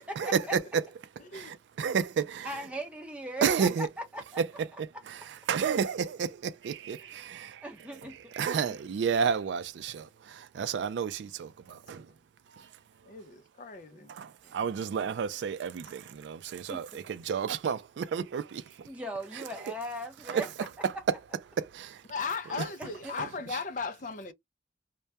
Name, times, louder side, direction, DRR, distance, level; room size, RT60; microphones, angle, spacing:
voice 1, 0.2-0.8 1.3-2.7 3.4-3.9 4.4-12.1 12.5-13.2 14.1-18.9 19.3-19.4 20.3-20.5 20.8-21.2 21.5-22.1 22.5-22.7 23.2-23.6, right 6 dB, 80° right, 0.3 m, -32 dB
voice 2, 2.4-3.7 4.1-4.2 7.0-7.3 7.6-8.2 13.9-14.1 14.4-14.5 16.7-17.0 18.9-20.5 22.4-23.1, right 1 dB, 5° right, 0.7 m, -39 dB
voice 3, 13.1-14.1 22.1-24.3, left 4 dB, 45° left, 0.4 m, -37 dB
2.2 x 2.1 x 2.7 m
head